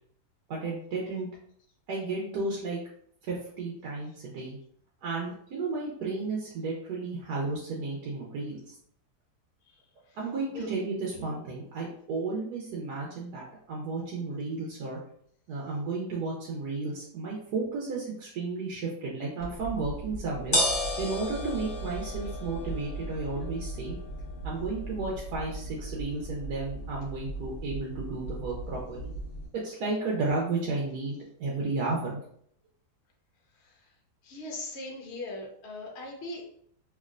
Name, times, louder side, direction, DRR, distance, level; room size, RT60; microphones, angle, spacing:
voice 1, 0.5-1.3 1.9-2.8 3.3-4.6 5.0-8.8 10.1-15.0 15.5-20.6 21.0-24.0 24.4-29.1 29.5-32.2, right 3 dB, 75° right, -4 dB, 1.2 m, -33 dB
voice 2, 9.6-10.2 10.5-10.7 33.5-33.9 34.2-36.4, left 2 dB, 60° left, -1 dB, 0.7 m, -40 dB
sound 1, 19.4-29.5, equal, 35° left, 1.1 m, -35 dB
3.2 x 2.6 x 2.4 m, 0.65 s
omnidirectional pair, 1.8 m